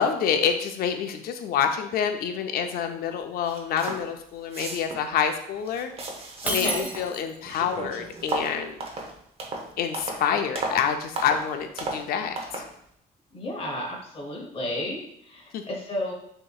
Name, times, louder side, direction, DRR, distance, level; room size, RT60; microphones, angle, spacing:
voice 1, 0.0-5.9 6.5-8.8 9.8-12.6 15.5-15.6, left 7 dB, 60° left, 6 dB, 0.5 m, -27 dB
sound 1, 3.1-3.2 3.5-4.1 4.4-5.1 5.6-7.1 7.4-10.3 10.6-10.9 11.2-11.5 11.8-12.1 12.4-12.7, right 2 dB, 35° right, 0.8 m, -34 dB
voice 2, 6.4-6.9 13.3-16.1, left 1 dB, 35° left, -1 dB, 1.0 m, -32 dB
Shatter, 6.5-7.5, right 1 dB, 10° right, 0.5 m, -30 dB
6.2 x 2.8 x 2.3 m, 0.73 s
cardioid pair, 110°, 17 cm